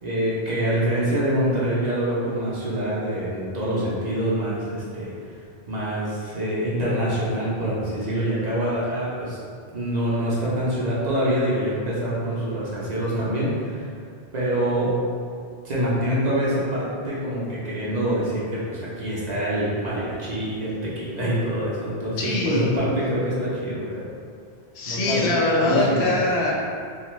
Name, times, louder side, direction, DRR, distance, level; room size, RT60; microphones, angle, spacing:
voice 1, 0.0-5.1 5.7-9.4 9.7-13.9 14.3-15.0 15.6-24.1 24.9-25.3 25.6-26.2, right 1 dB, 50° right, -7 dB, 0.6 m, -25 dB
voice 2, 22.2-22.7 24.7-26.5, left 2 dB, 80° left, -2 dB, 0.8 m, -22 dB
2.5 x 2.3 x 3.0 m, 2.2 s
omnidirectional pair, 1.1 m